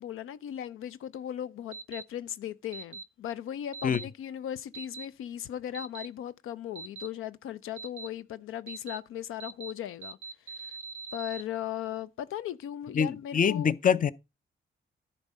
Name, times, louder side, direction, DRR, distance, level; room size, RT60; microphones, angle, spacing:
voice 1, 0.0-10.2 10.5-10.7 11.1-13.7, left 11 dB, 90° left, 0.4 m, -37 dB
sound 1, 1.7-2.0 2.7-3.0 3.7-4.0 4.7-5.0 5.7-6.1 6.8-7.1 7.8-8.1 8.7-9.0 9.4-9.7 10.0-11.4, right 5 dB, 85° right, 0.5 m, -42 dB
voice 2, 12.9-14.1, left 7 dB, 40° left, 0.5 m, -25 dB
10.5 x 4.1 x 5.4 m
cardioid pair, 70°, 21 cm